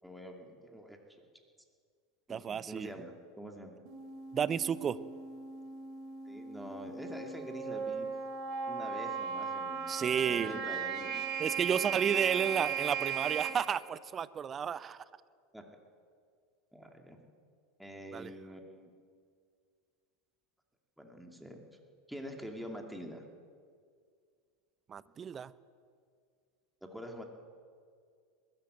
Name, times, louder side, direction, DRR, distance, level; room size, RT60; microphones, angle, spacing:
voice 1, 0.0-1.0 2.3-3.8 6.3-8.1 8.7-11.2 11.7-11.8 15.5-15.6 16.7-17.2 17.8-18.9 21.0-21.6 22.1-23.2 26.8-27.2, equal, ahead, 2 dB, 2.6 m, -46 dB
voice 2, 2.3-2.9 4.3-5.0 9.9-10.6 11.4-15.0 18.1-18.3 24.9-25.5, right 7 dB, 30° right, 17 dB, 0.7 m, -32 dB
sound 1, 3.9-13.5, right 6 dB, 50° right, 3.5 m, -37 dB
21.0 x 15.5 x 7.9 m, 2.1 s
hypercardioid pair, 85°, 0 cm